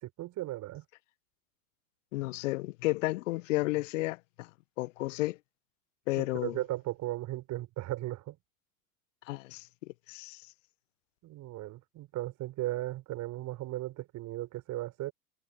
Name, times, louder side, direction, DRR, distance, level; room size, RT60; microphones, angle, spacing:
voice 1, 0.0-0.8 6.2-8.4 11.2-15.1, right 16 dB, 40° right, 4.4 m, -36 dB
voice 2, 2.1-4.5 4.8-5.4 6.1-6.6 9.3-10.5, left 20 dB, 55° left, 1.2 m, -32 dB
figure-of-eight pair, 85°, 45 cm